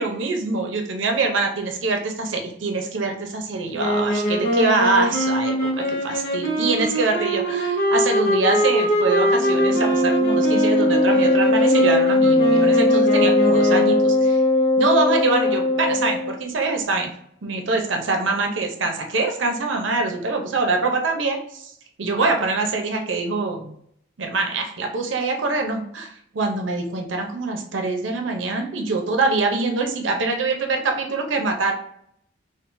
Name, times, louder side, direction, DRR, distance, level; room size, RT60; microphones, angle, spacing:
voice 1, 0.0-14.4 14.8-17.1 17.4-21.7 22.0-23.8 24.2-31.7, right 3 dB, 85° right, 3 dB, 0.6 m, -24 dB
sound 1, 3.8-14.2, equal, 65° left, 0.9 m, -23 dB
Wind instrument woodwind instrument, 9.3-16.4, left 2 dB, 35° left, 0.5 m, -19 dB
3.7 x 2.5 x 2.5 m, 0.68 s
head